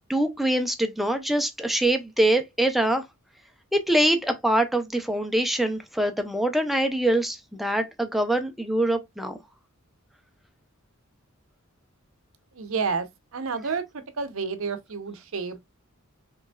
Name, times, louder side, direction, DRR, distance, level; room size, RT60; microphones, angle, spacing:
voice 1, 0.1-3.0 3.7-9.4, right 1 dB, ahead, 0.5 m, -24 dB
voice 2, 12.5-13.1 13.3-13.8 14.2-15.6, right 5 dB, 70° right, 0.7 m, -29 dB
5.0 x 3.1 x 2.3 m
head